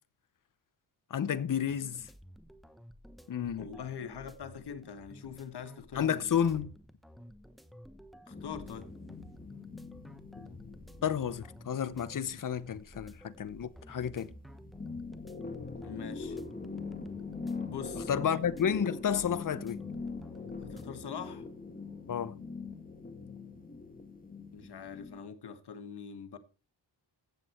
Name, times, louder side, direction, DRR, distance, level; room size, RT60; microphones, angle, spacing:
voice 1, 1.1-2.1 3.3-3.7 5.9-6.7 11.0-14.3 18.1-19.8 22.1-22.3, left 8 dB, 50° left, 1.0 m, -31 dB
sound 1, 1.7-21.1, equal, ahead, 1.1 m, -53 dB
voice 2, 3.6-6.2 8.3-8.9 15.8-16.4 17.7-18.1 20.7-21.5 24.5-26.4, left 7 dB, 65° left, 1.7 m, -43 dB
sound 2, 8.3-13.8 14.2-25.2, left 4 dB, 20° left, 2.0 m, -43 dB
15.0 x 8.4 x 4.5 m
wide cardioid pair, 115°, 42 cm